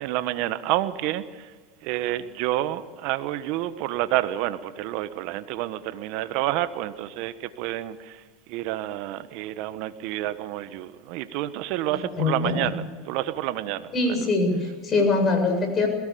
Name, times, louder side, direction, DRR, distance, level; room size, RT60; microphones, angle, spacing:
voice 1, 0.0-1.5 1.8-8.2 8.5-14.3, right 14 dB, 60° right, 12 dB, 1.4 m, -29 dB
voice 2, 11.9-12.7 13.9-15.9, left 3 dB, 30° left, 4 dB, 7.3 m, -23 dB
21.5 x 17.5 x 7.0 m, 1.5 s
supercardioid pair, 105°, 0 cm